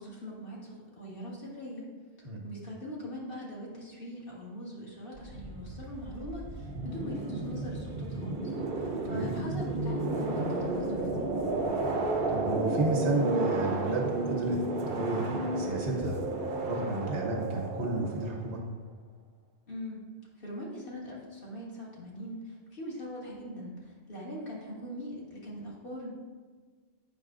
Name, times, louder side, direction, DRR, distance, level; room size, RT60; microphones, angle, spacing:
voice 1, 0.0-1.9 2.2-8.4 8.7-11.3 19.7-20.0 20.4-26.1, equal, 55° left, -4 dB, 1.5 m, -41 dB
sound 1, 5.2-18.6, right 2 dB, 60° right, 0.9 m, -32 dB
voice 2, 12.3-14.6 14.9-16.2 16.6-18.6, right 2 dB, 85° right, -1 dB, 1.4 m, -32 dB
8.0 x 5.5 x 2.5 m, 1.5 s
omnidirectional pair, 1.1 m